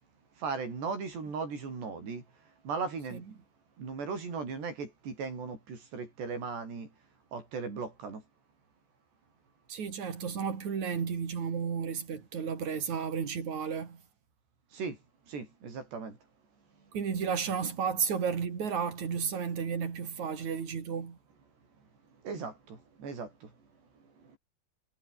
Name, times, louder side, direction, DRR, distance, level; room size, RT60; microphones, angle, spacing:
voice 1, 0.4-2.2 2.6-3.2 3.8-6.9 7.3-8.2 14.7-15.0 15.3-16.2 22.2-23.5, right 5 dB, 70° right, 9.6 m, -37 dB
voice 2, 9.7-14.0 16.9-21.2, right 6 dB, 45° right, 4.4 m, -33 dB
omnidirectional pair, 5.0 m